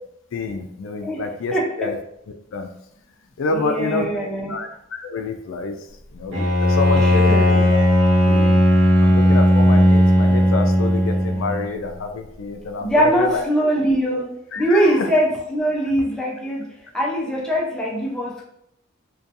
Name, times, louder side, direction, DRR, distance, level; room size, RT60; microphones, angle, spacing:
voice 1, 0.3-2.0 2.5-2.7 3.4-4.1 4.5-5.7 6.1-7.8 8.3-8.6 9.0-13.4 14.5-15.0, left 3 dB, 70° left, 5 dB, 0.4 m, -27 dB
voice 2, 1.0-1.7 3.5-4.6 7.0-7.7 12.8-18.4, equal, 5° left, -4 dB, 0.4 m, -22 dB
Bowed string instrument, 6.3-11.7, equal, 65° right, 0.7 m, -16 dB
2.7 x 2.2 x 2.5 m, 0.76 s
head